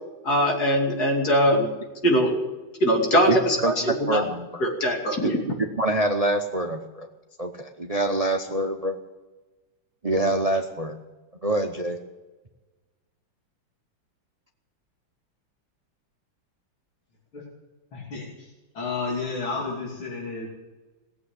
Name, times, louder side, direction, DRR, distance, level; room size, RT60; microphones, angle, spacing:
voice 1, 0.2-1.7 2.0-2.3 2.8-4.2 4.6-5.4, equal, 50° left, 1 dB, 3.3 m, -21 dB
voice 2, 3.3-3.7 4.1-4.6 5.2-5.3 5.6-7.1 7.4-9.0 10.0-11.0 11.4-12.0, right 2 dB, 45° right, 5 dB, 0.4 m, -25 dB
voice 3, 17.9-18.5 18.8-20.5, left 4 dB, 85° left, -3 dB, 3.6 m, -31 dB
18.0 x 8.1 x 9.8 m, 1.2 s
omnidirectional pair, 2.2 m